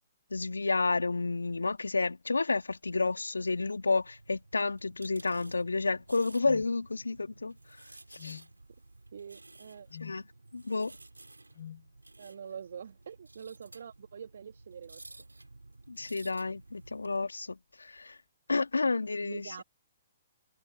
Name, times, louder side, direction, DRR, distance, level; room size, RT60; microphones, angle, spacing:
voice 1, 0.3-7.5 8.1-8.4 10.0-10.2 10.5-11.0 15.9-18.2 18.5-19.6, left 3 dB, 80° left, 1.7 m, -30 dB
sound 1, 3.5-17.2, right 2 dB, 85° right, 6.0 m, -54 dB
sound 2, 6.4-6.7 8.2-8.5 9.9-10.2 11.5-11.8, left 10 dB, 50° left, 1.1 m, -45 dB
voice 2, 9.1-9.9 12.2-15.0 19.2-19.6, right 7 dB, 60° right, 2.9 m, -45 dB
figure-of-eight pair, 125°, 0 cm